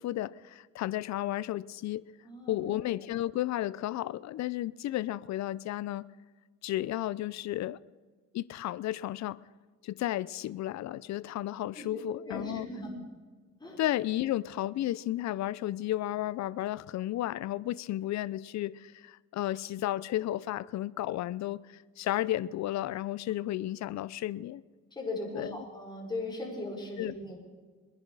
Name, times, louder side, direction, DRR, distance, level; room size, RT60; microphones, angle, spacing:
voice 1, 0.0-2.1 2.5-6.0 6.6-7.8 8.3-9.4 9.8-12.7 13.8-24.6 25.4-25.5 27.0-27.1, left 14 dB, 65° left, 0.5 m, -33 dB
voice 2, 2.2-2.8 11.8-11.9 12.3-12.9 13.6-13.8 24.9-27.4, left 2 dB, 15° left, 5.7 m, -38 dB
22.0 x 10.5 x 4.8 m
cardioid pair, 90°, 30 cm